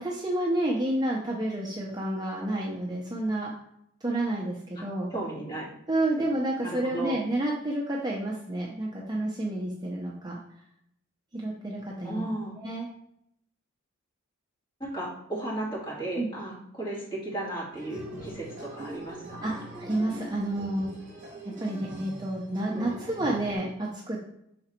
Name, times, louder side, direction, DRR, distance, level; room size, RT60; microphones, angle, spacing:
voice 1, 0.0-3.5 4.0-5.1 5.9-10.4 11.3-12.2 12.6-12.9 16.2-16.3 19.4-19.5 19.8-20.9 21.4-24.2, right 1 dB, 20° right, -2 dB, 0.6 m, -30 dB
voice 2, 5.1-5.7 6.2-6.3 6.6-7.2 12.0-12.6 14.8-19.6, right 2 dB, 20° left, -6 dB, 2.2 m, -35 dB
sound 1, 17.7-23.6, right 1 dB, 35° right, 1.5 m, -42 dB
5.9 x 3.9 x 4.3 m, 0.75 s
head